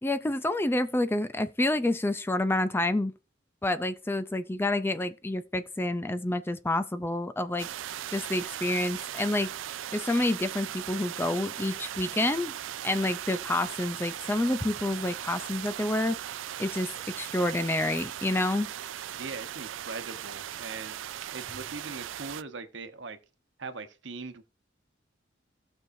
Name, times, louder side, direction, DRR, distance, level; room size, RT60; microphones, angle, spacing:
voice 1, 0.0-3.1 3.6-7.7 8.1-9.5 9.9-12.5 12.8-16.2 16.6-16.9 17.1-18.7, left 1 dB, 10° left, 0.4 m, -28 dB
sound 1, 7.6-22.4, right 11 dB, 85° right, 0.4 m, -38 dB
voice 2, 19.1-20.9 21.3-23.2 23.6-24.4, right 4 dB, 70° right, 1.0 m, -40 dB
17.0 x 6.3 x 2.7 m
head